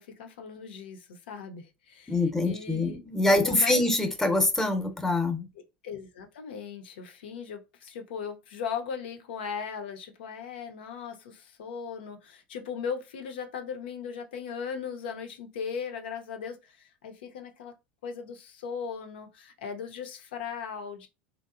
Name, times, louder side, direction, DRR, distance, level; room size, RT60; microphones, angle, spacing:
voice 1, 0.0-3.0 3.4-3.8 5.8-17.7 18.0-21.1, left 6 dB, 80° left, 0.5 m, -38 dB
voice 2, 2.1-5.5, left 2 dB, 5° left, 0.7 m, -25 dB
2.8 x 2.0 x 2.4 m
hypercardioid pair, 85°, 6 cm